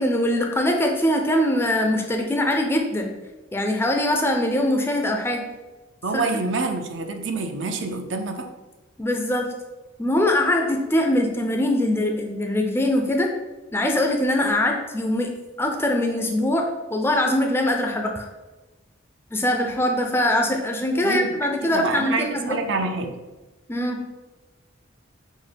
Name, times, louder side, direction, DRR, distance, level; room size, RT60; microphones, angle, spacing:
voice 1, 0.0-3.1 3.5-5.5 6.1-6.4 9.0-9.5 10.0-13.3 13.7-15.3 15.6-18.3 19.3-22.6 23.7-24.0, left 1 dB, 10° left, 2 dB, 0.4 m, -22 dB
voice 2, 6.0-8.5 21.0-21.2 21.6-23.1, right 3 dB, 65° right, 5 dB, 0.5 m, -27 dB
6.2 x 2.1 x 3.3 m, 1.1 s
head